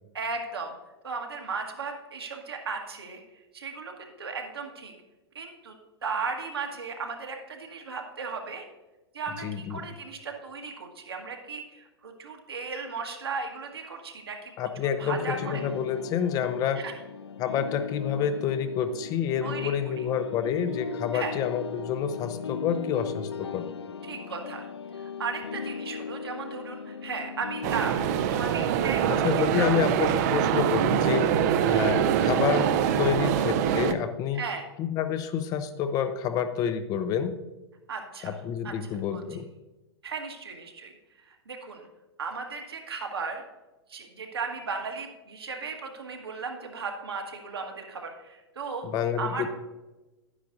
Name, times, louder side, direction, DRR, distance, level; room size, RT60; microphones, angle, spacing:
voice 1, 0.1-0.7 1.0-3.2 3.5-4.9 5.3-5.8 6.0-8.6 9.1-14.7 15.0-15.6 16.7-16.9 19.4-19.9 21.1-21.3 24.0-24.7 25.0-30.0 31.5-31.8 34.3-34.6 37.9-38.4 38.6-38.7 39.1-39.2 40.0-40.9 41.2-41.9 42.2-43.4 43.9-48.9 49.2-49.5, right 5 dB, 65° right, 2 dB, 1.6 m, -36 dB
voice 2, 9.4-9.8 14.6-15.2 15.5-16.8 17.4-23.7 29.1-31.3 31.7-34.4 34.8-37.3 38.2-39.5 48.8-49.5, left 8 dB, 25° left, 9 dB, 0.6 m, -28 dB
sound 1, 15.1-27.9, left 6 dB, 75° left, 0.4 m, -38 dB
sound 2, 27.6-33.9, right 9 dB, 40° right, 0.5 m, -24 dB
11.5 x 9.7 x 2.6 m, 1.1 s
figure-of-eight pair, 100°, 14 cm